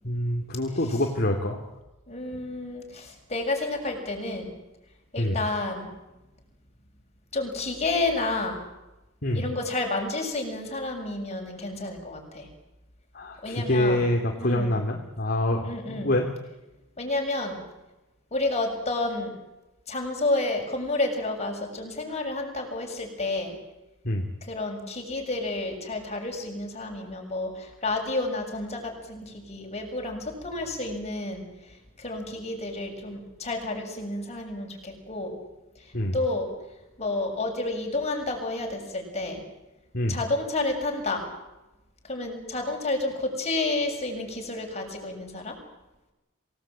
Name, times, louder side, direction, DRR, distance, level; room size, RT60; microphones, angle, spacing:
voice 1, 0.0-1.6 5.2-5.4 9.2-9.4 13.1-16.3 24.0-24.3 35.9-36.2 39.9-40.2, left 1 dB, 45° left, 2 dB, 3.0 m, -26 dB
voice 2, 2.1-4.5 5.1-5.9 7.3-8.6 9.3-12.5 13.4-14.0 14.4-14.7 15.6-16.1 17.0-17.6 18.3-19.3 19.9-23.6 24.4-31.4 32.0-35.3 36.1-36.5 37.0-39.4 40.1-41.3 42.1-45.6, left 2 dB, 30° left, 2 dB, 7.1 m, -30 dB
28.0 x 18.5 x 9.0 m, 0.99 s
head